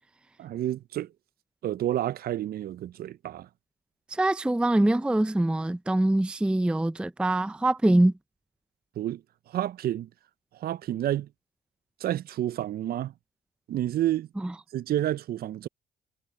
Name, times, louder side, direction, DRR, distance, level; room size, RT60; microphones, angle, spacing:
voice 1, 0.4-1.1 1.6-3.5 9.0-9.2 9.5-10.1 10.6-11.3 12.0-13.1 13.7-14.3 14.7-15.7, right 12 dB, 60° right, 0.5 m, -29 dB
voice 2, 4.1-8.1 14.4-14.5, right 1 dB, 5° right, 0.5 m, -24 dB
cardioid pair, 90°, 18 cm